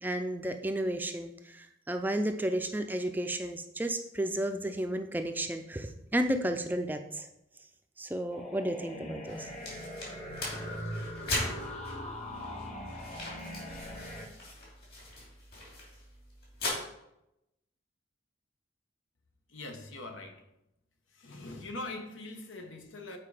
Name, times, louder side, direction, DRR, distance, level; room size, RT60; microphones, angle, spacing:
voice 1, 0.0-7.3 8.0-9.5, right 1 dB, 10° right, 6 dB, 0.4 m, -32 dB
sound 1, 8.3-14.3, equal, 35° left, 1.1 m, -41 dB
sound 2, 9.3-16.7, left 2 dB, 50° left, 2.9 m, -40 dB
voice 2, 19.5-20.4 21.1-23.2, left 2 dB, 90° left, 5 dB, 1.2 m, -42 dB
7.7 x 4.7 x 4.9 m, 0.85 s
head